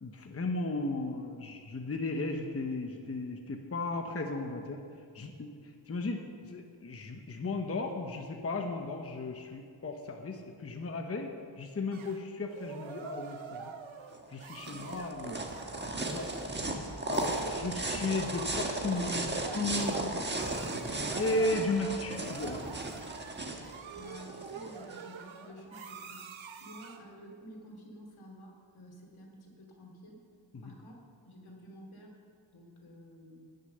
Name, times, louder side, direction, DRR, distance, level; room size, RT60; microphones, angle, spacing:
voice 1, 0.0-4.8 5.1-5.5 5.9-13.7 14.3-15.5 16.1-16.3 17.1-20.3 21.1-22.9 30.5-30.7, left 2 dB, 30° left, 4 dB, 0.9 m, -35 dB
sound 1, 11.9-27.1, right 6 dB, 70° right, 0.9 m, -47 dB
sound 2, 14.1-25.0, right 2 dB, 20° right, 1.3 m, -36 dB
voice 2, 23.9-30.2 30.6-31.0 31.3-32.2 32.5-33.5, equal, 80° left, 0 dB, 2.9 m, -51 dB
17.5 x 6.7 x 6.7 m, 2.3 s
wide cardioid pair, 130°, 48 cm